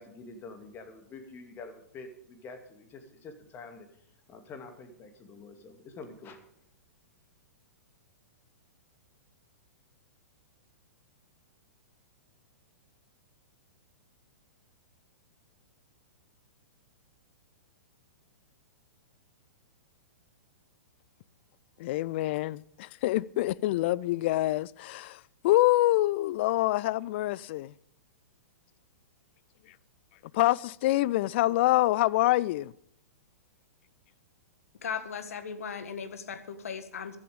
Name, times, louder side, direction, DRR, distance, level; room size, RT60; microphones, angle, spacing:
voice 1, 0.0-4.0 4.3-6.4, left 3 dB, 25° left, 2.4 m, -47 dB
voice 2, 21.8-27.7 30.3-32.7, left 17 dB, 45° left, 0.4 m, -26 dB
voice 3, 34.8-37.2, left 6 dB, 65° left, 1.7 m, -37 dB
15.5 x 12.0 x 5.1 m
figure-of-eight pair, 110°, 8 cm